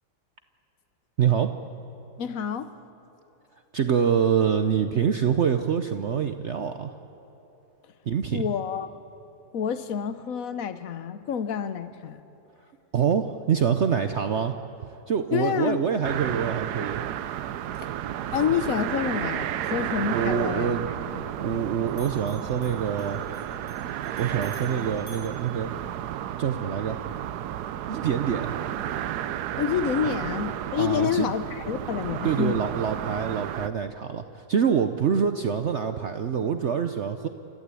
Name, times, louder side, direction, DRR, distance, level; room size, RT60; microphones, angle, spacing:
voice 1, 1.2-1.5 3.7-6.9 8.1-8.4 12.9-14.5 15.1-17.0 20.1-20.9 21.4-23.2 24.2-25.8 26.4-27.0 27.9-28.5 30.8-31.3 32.2-37.3, right 7 dB, 55° right, 8 dB, 0.8 m, -25 dB
voice 2, 2.2-2.7 8.3-8.9 9.5-12.2 15.3-15.9 17.8-17.9 18.3-21.3 29.6-32.6, left 8 dB, 60° left, 12 dB, 1.2 m, -28 dB
sound 1, 16.0-33.7, right 11 dB, 75° right, 1.2 m, -32 dB
Bell, 21.9-26.4, right 1 dB, 10° left, 4.6 m, -54 dB
29.5 x 14.5 x 8.4 m, 3.0 s
omnidirectional pair, 1.8 m